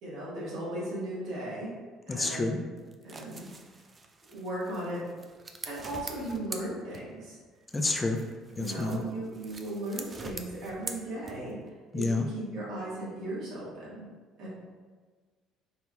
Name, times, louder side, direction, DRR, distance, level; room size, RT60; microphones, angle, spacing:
voice 1, 0.0-1.7 2.1-2.7 3.0-3.5 4.3-5.0 5.6-7.4 8.6-11.6 11.9-14.0 14.4-14.5, right 1 dB, 65° right, -6 dB, 1.4 m, -37 dB
voice 2, 2.1-2.6 7.7-8.2 8.6-9.0 11.9-12.3, left 3 dB, 20° left, 3 dB, 0.5 m, -29 dB
sound 1, 2.8-7.3 7.7-11.7, right 3 dB, 35° right, 0.4 m, -45 dB
4.5 x 2.8 x 2.3 m, 1.5 s
hypercardioid pair, 60°, 0 cm